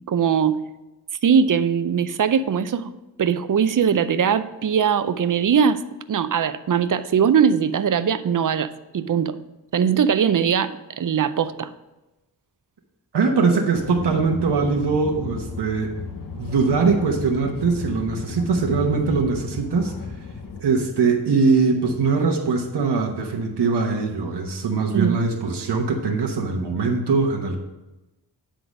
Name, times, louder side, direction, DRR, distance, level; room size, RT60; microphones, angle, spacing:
voice 1, 0.1-0.6 1.2-2.9 3.2-5.8 6.1-9.4 9.7-11.7 24.9-25.2, right 7 dB, 50° right, 12 dB, 0.6 m, -20 dB
voice 2, 13.1-15.9 16.4-19.9 20.6-27.6, right 4 dB, 80° right, 1 dB, 1.1 m, -21 dB
sound 1, 13.7-20.6, left 4 dB, 55° left, 1.0 m, -34 dB
10.0 x 3.9 x 6.1 m, 1.0 s
wide cardioid pair, 80°, 40 cm